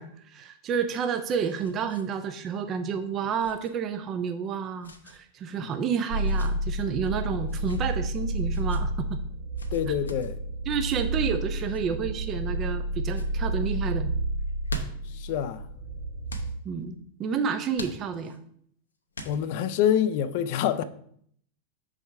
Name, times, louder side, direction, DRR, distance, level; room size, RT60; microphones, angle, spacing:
voice 1, 0.0-9.2 9.9-10.0 10.7-14.1 16.6-18.4, right 6 dB, 30° right, 0.5 m, -30 dB
sound 1, 1.4-2.1 2.3-2.5 3.4-3.7 4.8-5.2 6.1-6.5 7.4-7.8 8.5-8.8 9.6-10.3 11.5-11.8 12.4-12.8 13.1-13.3 14.4-15.1 16.3-16.5 17.7-18.4 19.1-19.7, equal, 75° left, 0.8 m, -40 dB
sound 2, 6.1-16.6, right 1 dB, 70° right, 2.3 m, -30 dB
voice 2, 9.7-10.4 15.1-15.6 19.3-20.8, left 9 dB, 50° left, 0.5 m, -26 dB
6.3 x 4.9 x 3.4 m
figure-of-eight pair, 90°, 0 cm